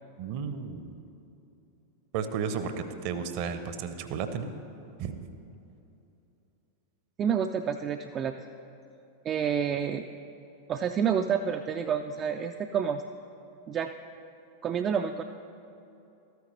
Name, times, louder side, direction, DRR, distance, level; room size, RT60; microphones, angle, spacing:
voice 1, 0.2-0.9 2.1-4.5 5.0-5.1, right 6 dB, 45° right, 10 dB, 0.7 m, -33 dB
voice 2, 7.2-8.3 9.2-10.1 10.7-13.0 13.7-13.9 14.6-15.2, right 7 dB, 30° right, 6 dB, 0.3 m, -28 dB
13.0 x 9.3 x 3.3 m, 2.8 s
figure-of-eight pair, 90°, 0 cm